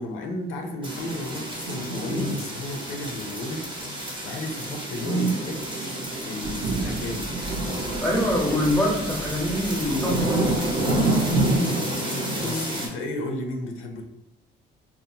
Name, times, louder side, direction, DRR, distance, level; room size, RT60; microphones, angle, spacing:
voice 1, 0.0-3.6 4.0-5.5 5.9-7.3 11.0-14.0, left 1 dB, 90° left, 3 dB, 0.5 m, -34 dB
sound 1, 0.8-12.9, right 1 dB, 25° right, 0.8 m, -28 dB
voice 2, 5.0-5.4 8.0-10.4 12.4-12.7, equal, 5° left, -3 dB, 0.8 m, -25 dB
sound 2, 6.4-11.6, right 3 dB, 55° right, 0.4 m, -36 dB
2.6 x 2.0 x 2.7 m, 0.87 s
cardioid pair, 90°, 20 cm